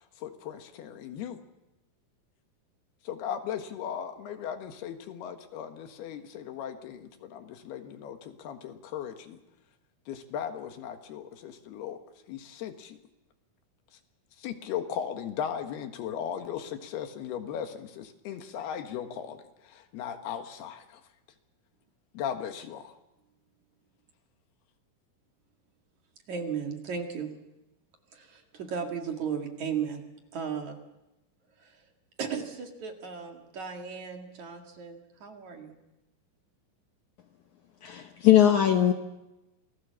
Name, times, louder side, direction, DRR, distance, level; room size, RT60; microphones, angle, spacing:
voice 1, 0.2-1.4 3.0-9.4 10.1-12.0 12.3-13.0 14.4-21.0 22.1-22.9, left 8 dB, 85° left, 7 dB, 3.5 m, -37 dB
voice 2, 26.3-27.3 28.1-30.0 30.3-30.8 31.6-31.8 32.2-35.7, right 6 dB, 50° right, 3 dB, 3.2 m, -35 dB
voice 3, 37.8-38.9, left 11 dB, 65° left, 5 dB, 2.0 m, -20 dB
28.0 x 20.0 x 7.1 m, 0.97 s
omnidirectional pair, 4.5 m